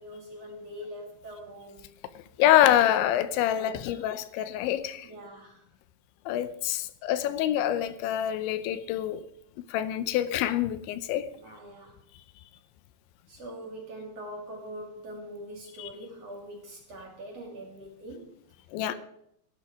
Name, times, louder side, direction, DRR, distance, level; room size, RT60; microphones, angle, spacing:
voice 1, 0.0-1.9 3.5-4.1 5.0-5.6 11.3-11.9 13.3-18.3 18.9-19.0, equal, 40° right, 2.9 m, -43 dB
voice 2, 2.4-5.1 6.3-9.2 9.7-11.3 15.8-15.9 18.7-18.9, left 12 dB, 85° left, 3.0 m, -26 dB
15.5 x 11.5 x 4.8 m
omnidirectional pair, 5.3 m